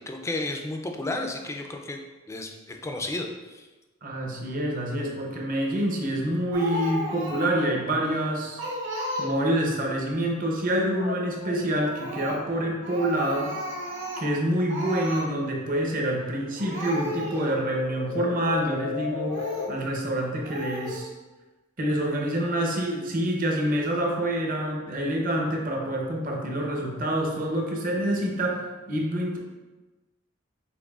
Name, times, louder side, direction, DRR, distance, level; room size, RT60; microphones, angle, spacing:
voice 1, 0.1-2.0 2.3-2.5 2.8-3.7, left 2 dB, 15° left, 3 dB, 0.4 m, -32 dB
voice 2, 4.0-8.6 9.2-13.6 14.2-21.1 21.8-29.4, right 1 dB, 45° right, 0 dB, 0.8 m, -27 dB
Speech, 6.5-7.7 8.1-8.2 8.6-9.6 11.8-12.5 12.8-14.4 14.7-15.3 16.2-16.3 16.6-17.6 18.2-18.3 19.3-19.8 20.4-21.0, right 1 dB, 65° right, 1.1 m, -34 dB
sound 1, 10.8-14.9 15.2-19.8, left 7 dB, 85° left, 0.4 m, -37 dB
6.0 x 3.3 x 2.4 m, 1.2 s
head